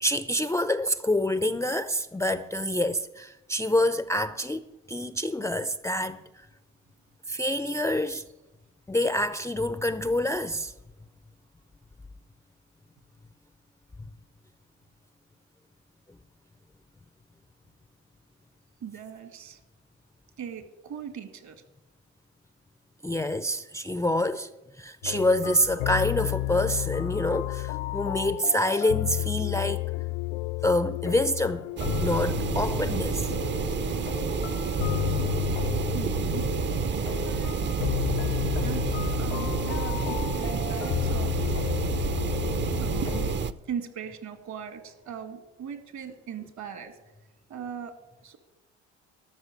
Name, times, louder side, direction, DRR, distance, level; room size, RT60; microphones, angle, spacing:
voice 1, 0.0-6.5 7.3-8.2 8.9-10.7 23.0-24.5 24.8-29.8 30.6-31.7 32.0-33.3, left 1 dB, 10° left, 0.5 m, -27 dB
voice 2, 18.8-19.6 20.4-21.6 35.9-36.8 37.2-37.6 38.6-41.3 42.8-43.3 43.7-47.0 47.5-47.9 48.2-48.4, right 7 dB, 55° right, 2.0 m, -39 dB
sound 1, 25.0-43.4, left 18 dB, 75° left, 0.5 m, -32 dB
sound 2, 31.8-43.5, right 6 dB, 35° right, 0.7 m, -29 dB
13.0 x 6.2 x 9.6 m
supercardioid pair, 80°, 34 cm